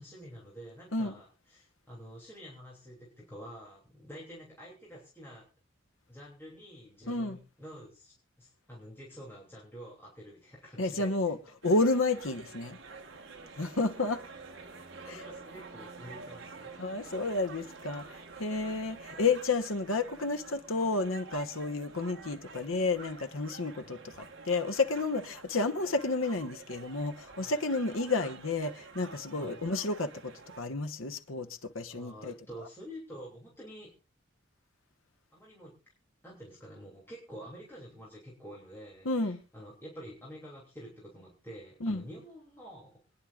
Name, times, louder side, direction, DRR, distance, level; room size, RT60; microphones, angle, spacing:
voice 1, 0.0-5.4 6.1-11.3 13.4-13.5 15.0-16.8 18.8-18.9 23.7-24.0 27.4-27.6 29.3-29.6 31.9-33.9 35.3-35.7 36.2-43.0, equal, 10° left, 3.1 m, -48 dB
voice 2, 7.1-7.4 10.8-11.4 11.6-12.8 13.6-14.2 16.8-18.1 18.4-32.3 39.0-39.4 41.8-42.0, left 3 dB, 80° left, 1.2 m, -31 dB
sound 1, 11.6-30.6, right 4 dB, 65° right, 1.5 m, -49 dB
25.5 x 10.0 x 2.5 m
head